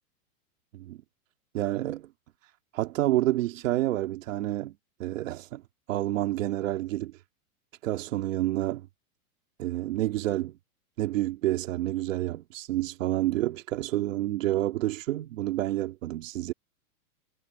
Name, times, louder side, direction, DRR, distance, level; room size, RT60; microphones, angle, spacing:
voice 1, 1.5-2.1 2.7-4.7 5.0-5.6 5.9-7.2 7.8-8.9 9.6-10.5 11.0-16.5, right 15 dB, 60° right, 2.5 m, -29 dB
supercardioid pair, 165°, 44 cm